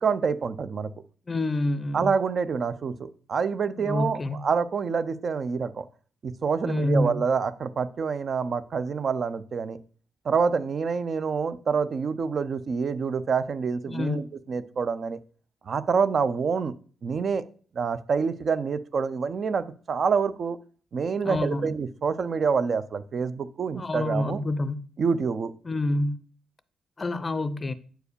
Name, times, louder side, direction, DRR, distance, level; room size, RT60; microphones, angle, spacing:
voice 1, 0.0-0.9 1.9-5.9 6.2-9.8 10.2-15.2 15.7-16.7 17.0-17.4 17.8-20.6 20.9-24.4 25.0-25.5, right 5 dB, 45° right, 0.6 m, -27 dB
voice 2, 1.3-2.1 3.8-4.4 6.6-7.2 13.9-14.3 21.2-21.7 23.7-24.8 25.6-26.2 27.0-27.7, left 1 dB, 25° left, 0.5 m, -27 dB
8.9 x 4.8 x 6.7 m
cardioid pair, 135°, 0 cm